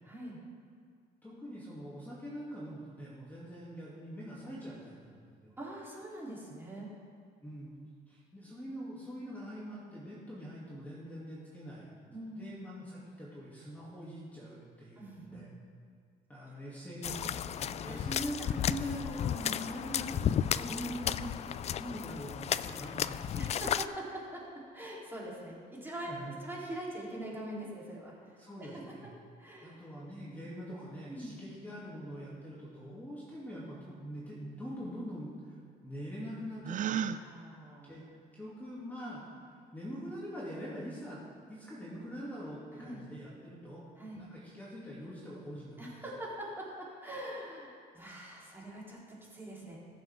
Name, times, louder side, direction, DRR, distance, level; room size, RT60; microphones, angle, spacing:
voice 1, 0.0-0.4 5.6-6.9 12.1-12.5 15.0-15.4 17.8-18.0 20.6-20.7 23.3-28.8 29.4-29.8 31.1-31.4 37.1-37.9 42.7-43.1 44.0-44.2 45.8-49.8, right 1 dB, 15° right, -6 dB, 3.7 m, -43 dB
voice 2, 1.2-5.5 7.4-7.7 8.1-11.9 12.3-15.5 16.3-23.4 26.1-26.3 28.4-29.1 29.6-35.5 35.8-37.1 37.9-38.1 38.3-41.2 41.5-43.8 44.1-45.8, equal, 10° left, -8 dB, 2.8 m, -43 dB
sound 1, 17.0-23.9, left 9 dB, 40° left, 0.4 m, -33 dB
Gasp, 36.6-37.2, right 8 dB, 50° right, 0.6 m, -32 dB
21.5 x 7.4 x 3.7 m, 2.2 s
cardioid pair, 110°, 17 cm